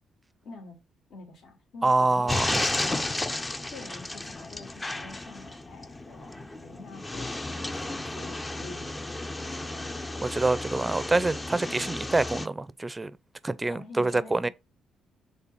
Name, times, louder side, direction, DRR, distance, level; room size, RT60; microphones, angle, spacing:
voice 1, 0.4-0.8 1.1-3.1 3.7-10.4 13.6-14.5, left 3 dB, 65° left, 2.6 m, -47 dB
voice 2, 1.8-2.7 10.2-13.1 13.4-14.5, right 2 dB, 20° right, 0.6 m, -26 dB
sound 1, 2.3-12.5, left 2 dB, 20° left, 0.7 m, -33 dB
7.2 x 3.8 x 5.4 m
cardioid pair, 90°, 0 cm